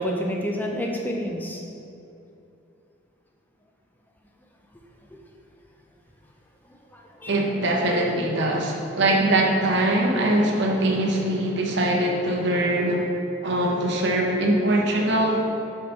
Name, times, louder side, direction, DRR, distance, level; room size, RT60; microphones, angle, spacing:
voice 1, 0.0-1.6 5.1-5.2 6.7-7.4 7.9-8.1 8.7-8.8, equal, 10° left, 1 dB, 0.5 m, -30 dB
voice 2, 7.3-13.1 13.4-15.4, right 1 dB, 55° right, 0 dB, 0.8 m, -22 dB
4.9 x 4.2 x 5.7 m, 2.7 s
head